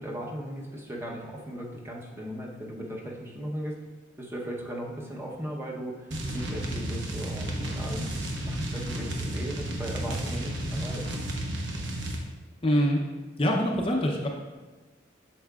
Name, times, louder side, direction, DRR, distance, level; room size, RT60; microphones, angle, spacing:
voice 1, 0.0-3.8 4.2-11.2, equal, 10° right, -2 dB, 0.8 m, -37 dB
sound 1, 6.1-12.2, right 1 dB, 70° right, 1.0 m, -32 dB
voice 2, 12.6-13.0 13.4-14.3, equal, 30° left, 0 dB, 0.6 m, -24 dB
8.3 x 6.5 x 2.3 m, 1.3 s
head